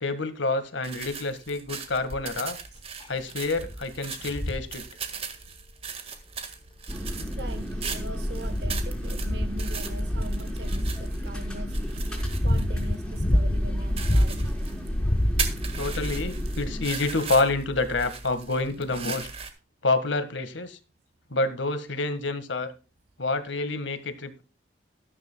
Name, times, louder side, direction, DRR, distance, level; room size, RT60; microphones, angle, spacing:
voice 1, 0.0-2.6 3.1-4.8 15.8-19.3 19.8-20.8 21.3-22.7 23.2-24.4, left 3 dB, 75° left, 1.7 m, -28 dB
sound 1, 0.8-19.5, right 5 dB, 30° right, 1.8 m, -38 dB
sound 2, 2.1-2.4 3.0-3.1 3.6-3.8 4.3-4.7 6.1-6.2 7.0-7.7 8.2-11.1 11.8-14.5 14.9-15.8 16.7-16.8, left 1 dB, 25° left, 0.9 m, -27 dB
sound 3, 6.9-16.9, equal, 5° left, 4.0 m, -32 dB
voice 2, 7.4-11.8 12.4-14.5, right 1 dB, 60° right, 0.9 m, -41 dB
13.5 x 13.0 x 2.3 m
head